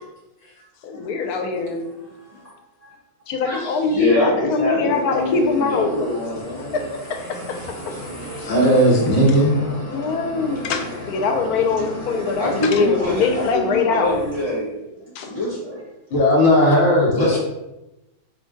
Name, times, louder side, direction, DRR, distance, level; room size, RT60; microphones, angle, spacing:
voice 1, 0.8-1.8 3.3-3.9 4.2-5.9 6.7-7.6 9.9-14.2 15.2-15.3, left 4 dB, 85° left, 5 dB, 1.1 m, -22 dB
voice 2, 2.0-2.4 2.8-2.9 3.4-6.9 10.0-10.1 12.4-14.9 15.2-15.8 17.1-17.4, left 2 dB, 30° right, -8 dB, 0.9 m, -25 dB
sound 1, 4.8-14.6, equal, 15° left, 0.6 m, -35 dB
voice 3, 8.4-9.6 16.1-17.4, equal, 60° left, -3 dB, 1.6 m, -16 dB
3.8 x 2.5 x 3.7 m, 0.95 s
omnidirectional pair, 1.6 m